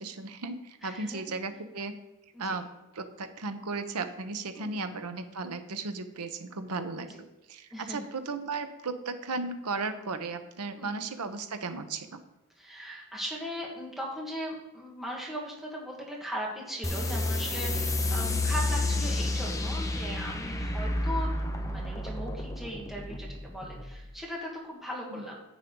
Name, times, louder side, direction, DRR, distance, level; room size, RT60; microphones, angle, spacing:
voice 1, 0.0-1.9 2.4-2.6 2.9-12.2 25.1-25.3, right 3 dB, 85° right, 9 dB, 0.9 m, -35 dB
voice 2, 0.8-1.3 2.3-2.6 4.6-4.9 7.1-7.2 7.7-8.1 10.8-11.0 12.6-25.4, equal, ahead, -3 dB, 1.7 m, -38 dB
sound 1, 16.8-24.0, left 2 dB, 15° left, 0.7 m, -30 dB
9.6 x 8.3 x 3.8 m, 0.95 s
head